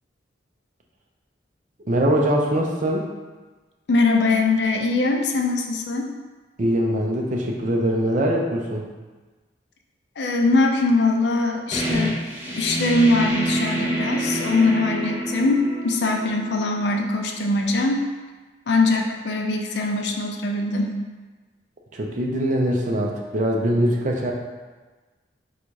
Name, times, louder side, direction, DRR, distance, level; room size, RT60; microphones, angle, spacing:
voice 1, 1.9-3.0 6.6-8.8 21.9-24.3, equal, 45° right, 0 dB, 0.5 m, -22 dB
voice 2, 3.9-6.1 10.2-18.1 18.7-21.0, left 2 dB, 70° left, 3 dB, 0.5 m, -22 dB
sound 1, 11.7-17.2, equal, 10° right, 0.8 m, -27 dB
3.9 x 2.4 x 4.6 m, 1.3 s
head